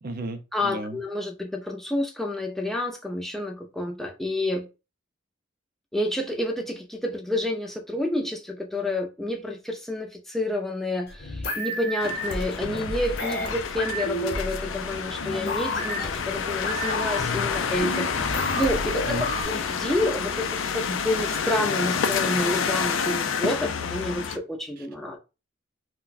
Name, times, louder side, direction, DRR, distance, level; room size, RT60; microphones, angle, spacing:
voice 1, 0.0-1.0 19.1-19.3, right 2 dB, 50° right, 0.5 m, -33 dB
voice 2, 0.5-4.7 5.9-20.4 20.7-25.2, left 1 dB, ahead, 0.5 m, -29 dB
sound 1, 11.1-19.4, equal, 55° left, 0.8 m, -32 dB
sound 2, 12.0-24.4, left 6 dB, 80° left, 0.4 m, -29 dB
2.4 x 2.2 x 4.0 m
head